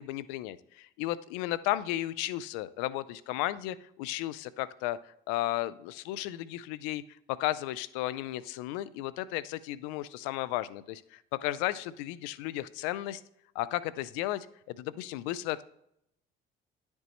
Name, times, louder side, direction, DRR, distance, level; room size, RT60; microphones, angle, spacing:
voice 1, 0.0-5.0 5.3-7.0 7.4-13.2 13.6-15.6, left 15 dB, 90° left, 17 dB, 0.4 m, -34 dB
11.0 x 5.3 x 3.1 m, 0.73 s
supercardioid pair, 85°, 20 cm